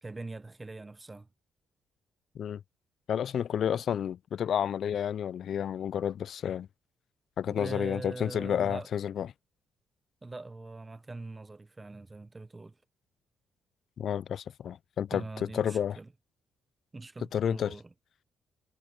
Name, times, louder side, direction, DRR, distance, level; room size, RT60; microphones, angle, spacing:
voice 1, 0.0-1.3 3.6-3.8 7.5-8.9 10.2-12.8 15.1-16.1 16.9-17.9, right 3 dB, 20° right, 0.9 m, -42 dB
voice 2, 3.1-6.7 7.4-9.3 14.0-16.0 17.3-17.7, left 9 dB, 60° left, 0.3 m, -30 dB
cardioid pair, 90°, 0 cm